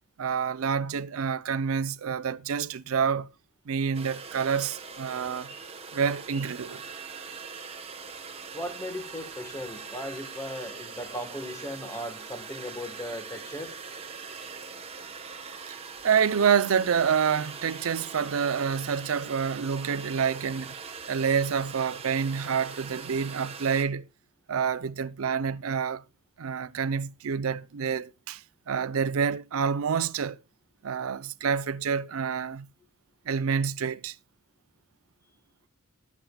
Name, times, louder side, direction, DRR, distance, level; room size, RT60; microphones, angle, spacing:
voice 1, 0.2-3.3 3.7-5.5 5.9-6.8 16.0-20.7 21.1-24.1 24.5-26.0 26.4-30.4 30.8-32.6 33.3-34.1, right 6 dB, 85° right, 0.5 m, -27 dB
sound 1, 3.9-23.8, right 5 dB, 30° right, 1.1 m, -42 dB
voice 2, 8.5-13.7, left 1 dB, 15° left, 1.3 m, -37 dB
19.0 x 7.3 x 2.3 m
head